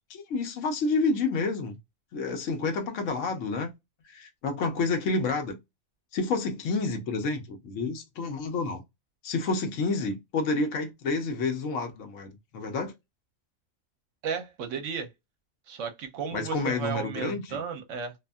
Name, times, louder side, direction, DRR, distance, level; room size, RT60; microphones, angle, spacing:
voice 1, 0.1-1.8 2.1-3.7 4.0-5.6 6.1-8.8 9.2-12.9 16.3-17.6, left 3 dB, 70° left, 1.1 m, -29 dB
voice 2, 14.2-15.1 15.7-18.1, right 6 dB, 75° right, 1.0 m, -34 dB
2.7 x 2.5 x 2.2 m
omnidirectional pair, 1.4 m